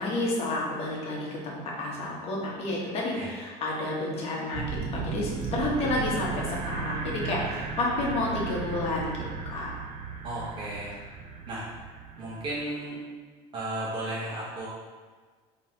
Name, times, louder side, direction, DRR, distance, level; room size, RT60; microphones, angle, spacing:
voice 1, 0.0-9.2 9.5-9.7, left 2 dB, 45° left, -3 dB, 1.0 m, -30 dB
sound 1, 4.5-12.6, right 5 dB, 55° right, 0.4 m, -35 dB
voice 2, 10.2-10.9 11.5-11.7 12.2-13.0 13.5-14.7, right 1 dB, 35° right, -7 dB, 0.9 m, -34 dB
3.8 x 2.9 x 2.8 m, 1.5 s
cardioid pair, 130°, 14 cm